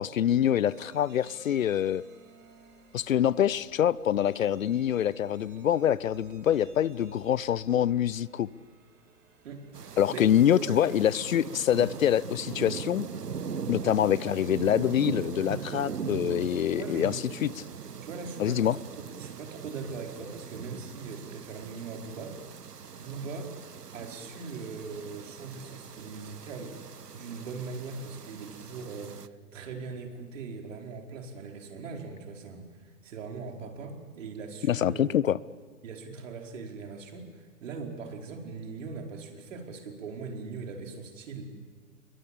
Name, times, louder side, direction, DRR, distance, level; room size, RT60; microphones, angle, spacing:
voice 1, 0.0-2.0 2.9-8.5 10.0-13.1 13.7-17.5 18.4-18.8 34.7-35.4, left 10 dB, 60° left, 22 dB, 0.7 m, -25 dB
sound 1, 0.6-10.0, right 4 dB, 25° right, 4.9 m, -58 dB
voice 2, 9.4-10.2 10.5-10.8 11.8-12.0 16.8-17.2 18.0-22.4 22.9-23.5 23.9-26.8 27.1-29.2 29.5-35.2 35.8-41.5, right 4 dB, 55° right, 3 dB, 4.9 m, -40 dB
sound 2, 9.7-29.3, right 6 dB, 85° right, 1.0 m, -40 dB
28.0 x 22.0 x 8.7 m, 1.5 s
figure-of-eight pair, 120°, 46 cm